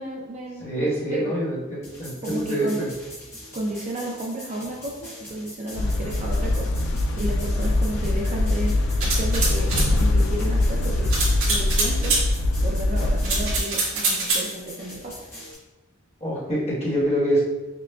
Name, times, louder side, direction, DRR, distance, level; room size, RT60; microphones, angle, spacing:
voice 1, 0.0-1.3 2.2-2.8 3.5-8.7 9.0-12.2 12.6-15.2, right 1 dB, 35° right, -1 dB, 0.4 m, -33 dB
voice 2, 0.6-2.9 16.2-17.4, right 1 dB, 30° left, -7 dB, 1.3 m, -25 dB
sound 1, 1.8-15.5, left 1 dB, 10° left, 0.9 m, -42 dB
sound 2, 5.8-13.6, left 2 dB, 55° left, 0.3 m, -23 dB
sound 3, 9.0-9.9 11.1-12.2 13.2-14.5, right 3 dB, 75° right, 1.4 m, -24 dB
5.7 x 2.2 x 2.3 m, 1.1 s
head